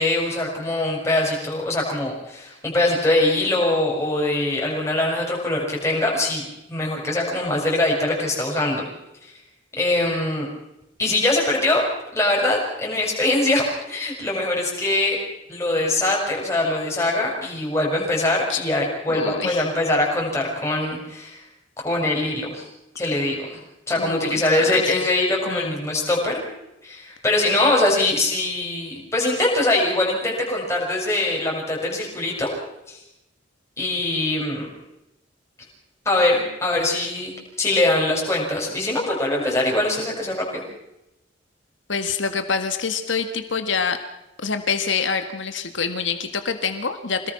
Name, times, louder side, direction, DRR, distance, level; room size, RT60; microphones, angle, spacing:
voice 1, 0.0-8.9 9.8-10.5 11.0-11.8 12.1-15.2 15.5-21.4 21.8-22.7 23.0-23.6 23.9-26.4 26.8-32.5 32.9-33.0 33.8-34.7 36.1-40.6, left 2 dB, 15° left, -2 dB, 5.4 m, -22 dB
voice 2, 19.1-19.7 24.0-25.0 25.5-25.8 41.9-44.0 44.4-47.3, left 5 dB, 80° left, 8 dB, 1.7 m, -26 dB
26.0 x 18.5 x 6.0 m, 0.91 s
head